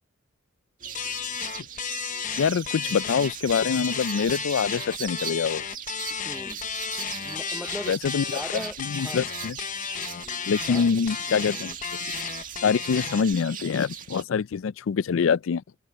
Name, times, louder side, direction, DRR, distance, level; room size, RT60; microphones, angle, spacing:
sound 1, 0.8-14.2, right 8 dB, 40° right, 2.0 m, -39 dB
sound 2, 0.9-13.3, left 7 dB, 40° left, 0.8 m, -33 dB
voice 1, 2.4-5.6 7.9-8.4 8.8-9.6 10.1-11.7 12.6-15.6, left 6 dB, 70° left, 0.4 m, -25 dB
voice 2, 6.3-6.6 7.2-9.3 10.2-11.0 11.3-11.8, equal, ahead, 0.8 m, -40 dB
head